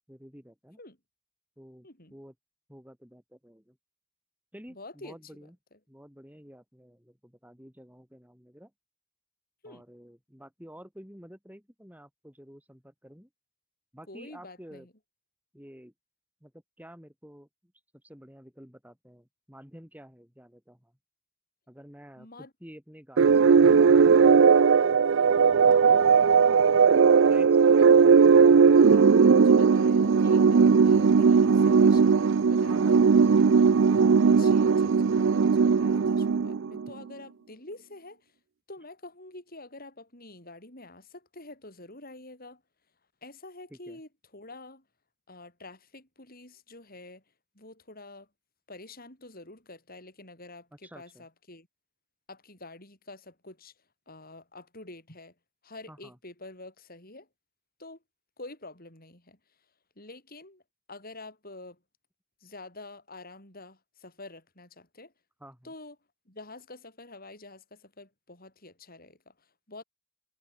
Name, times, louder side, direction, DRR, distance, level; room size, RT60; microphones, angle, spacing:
voice 1, 0.1-0.8 1.6-2.3 2.7-3.8 4.5-5.6 5.9-8.7 9.6-13.3 13.9-14.9 15.5-15.9 16.4-20.9 21.7-25.1 25.6-26.2 27.3-27.9 43.7-44.0 50.8-51.3 55.9-56.2 65.4-65.7, equal, 5° right, 6.3 m, -50 dB
voice 2, 4.7-5.5 9.6-9.8 14.1-14.9 22.2-22.5 27.8-28.1 28.9-33.0 34.2-38.3 38.7-42.6 43.2-44.8 45.3-47.2 47.5-48.3 48.7-51.7 52.3-53.7 54.1-55.3 55.6-57.3 57.8-58.0 58.4-59.4 60.0-60.6 60.9-61.8 62.4-65.1 65.6-66.0 66.3-69.8, left 2 dB, 40° left, 7.6 m, -47 dB
sound 1, 23.2-36.9, right 5 dB, 60° right, 0.4 m, -19 dB
head